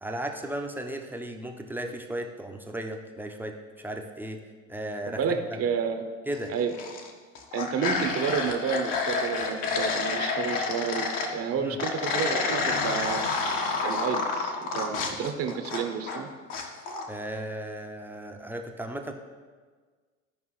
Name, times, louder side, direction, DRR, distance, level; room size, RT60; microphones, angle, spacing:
voice 1, 0.0-4.4 4.7-5.2 6.3-6.5 11.6-11.8 17.1-19.1, right 1 dB, 5° right, 2 dB, 0.8 m, -35 dB
voice 2, 5.1-6.0 6.5-6.7 7.5-11.1 11.3-13.3 13.8-16.3, right 6 dB, 35° right, 6 dB, 1.0 m, -30 dB
sound 1, 6.5-7.1 7.3-11.3 11.8-16.2 16.5-17.1, left 4 dB, 55° left, 1.5 m, -29 dB
15.0 x 5.2 x 3.2 m, 1.5 s
hypercardioid pair, 85°, 41 cm